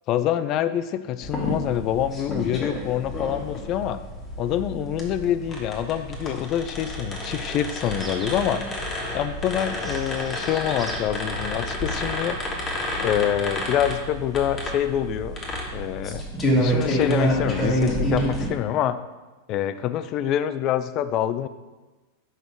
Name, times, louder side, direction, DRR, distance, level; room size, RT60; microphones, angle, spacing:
voice 1, 0.1-4.0 4.4-8.6 9.1-12.4 13.0-15.4 15.7-16.3 16.6-19.0 19.5-21.5, left 10 dB, 45° left, 13 dB, 0.3 m, -26 dB
sound 1, 1.2-18.5, equal, 25° left, 1.4 m, -29 dB
sound 2, 7.8-8.5 9.4-11.1, right 2 dB, 15° right, 0.9 m, -42 dB
5.3 x 4.0 x 4.6 m, 1.2 s
hypercardioid pair, 95°, 0 cm